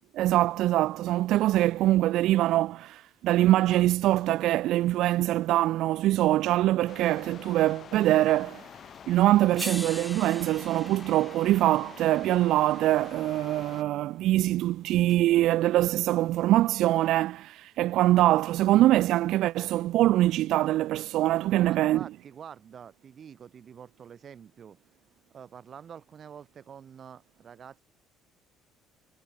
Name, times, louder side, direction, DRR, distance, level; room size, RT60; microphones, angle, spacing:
voice 1, 0.1-8.7 9.1-22.0, right 15 dB, 60° right, 0.8 m, -23 dB
sound 1, 6.9-13.8, left 8 dB, 35° left, 1.7 m, -47 dB
sound 2, 8.9-9.0 9.6-13.8 15.1-15.2, equal, ahead, 5.2 m, -43 dB
voice 2, 21.5-24.8 25.3-27.8, right 8 dB, 35° right, 4.6 m, -47 dB
cardioid pair, 160°, 0 cm